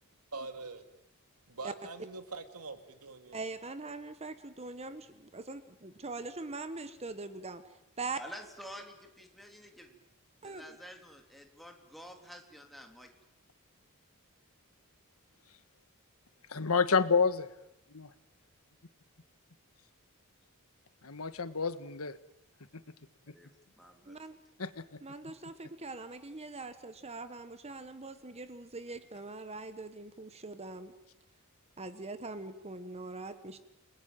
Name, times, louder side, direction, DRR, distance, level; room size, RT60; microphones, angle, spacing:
voice 1, 0.3-0.8 1.5-3.4, right 3 dB, 85° right, 8 dB, 2.5 m, -43 dB
voice 2, 3.3-7.6 8.0-8.2 10.4-10.6 24.0-24.4 25.0-30.9 31.8-33.6, right 3 dB, 30° right, 11 dB, 1.3 m, -42 dB
voice 3, 8.1-10.1 10.4-13.1 23.3-23.5 23.8-24.2, equal, ahead, 3 dB, 3.3 m, -50 dB
voice 4, 16.5-17.5 17.9-18.1 21.0-22.2 22.7-22.8 23.3-23.4 24.6-25.0, left 5 dB, 75° left, 12 dB, 1.5 m, -29 dB
29.5 x 20.0 x 9.1 m, 0.85 s
head